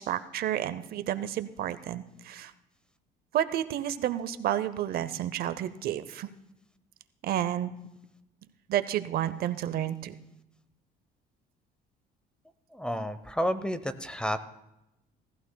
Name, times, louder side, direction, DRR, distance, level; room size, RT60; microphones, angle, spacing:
voice 1, 0.0-2.5 3.3-6.3 7.2-7.7 8.7-10.1, right 11 dB, 65° right, 13 dB, 0.6 m, -30 dB
voice 2, 12.7-14.4, equal, 5° left, 12 dB, 0.7 m, -31 dB
18.5 x 14.5 x 2.2 m, 0.90 s
cardioid pair, 110°, 17 cm